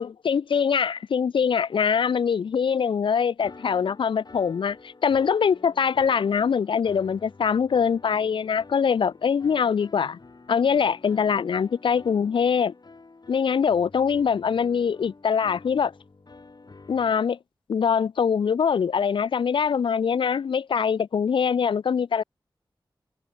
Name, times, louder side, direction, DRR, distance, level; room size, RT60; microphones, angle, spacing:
voice 1, 0.0-10.2 10.5-12.7 13.3-15.9 16.9-17.4 17.7-22.2, left 6 dB, 80° left, 0.4 m, -23 dB
sound 1, 3.4-17.1, left 3 dB, 55° left, 2.5 m, -49 dB
cardioid pair, 45°, 8 cm